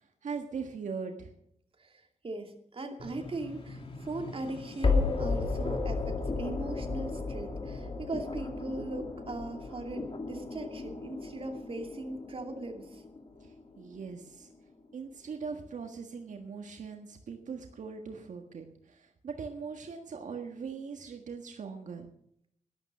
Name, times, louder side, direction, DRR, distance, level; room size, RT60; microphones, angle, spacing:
voice 1, 0.2-1.3 13.4-14.5 14.9-22.1, right 5 dB, 85° right, 4 dB, 1.6 m, -40 dB
voice 2, 1.8-13.0, right 2 dB, 50° right, 3 dB, 2.6 m, -39 dB
sound 1, 3.0-14.0, left 3 dB, 45° left, 2.7 m, -34 dB
12.5 x 12.0 x 6.2 m, 0.69 s
wide cardioid pair, 95°, 12 cm